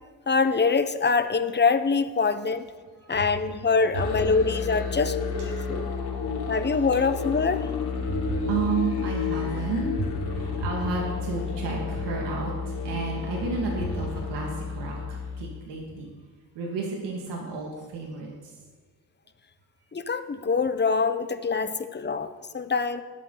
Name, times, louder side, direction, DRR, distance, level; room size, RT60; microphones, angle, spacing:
voice 1, 0.3-2.7 3.1-5.8 6.5-7.7 19.9-23.0, left 4 dB, 25° left, 10 dB, 0.9 m, -24 dB
Musical instrument, 3.9-15.5, left 5 dB, 70° left, 2.9 m, -31 dB
voice 2, 5.5-6.5 8.0-16.1 16.6-18.5, right 4 dB, 85° right, -2 dB, 2.2 m, -32 dB
20.0 x 8.5 x 4.0 m, 1.4 s
cardioid pair, 75°, 41 cm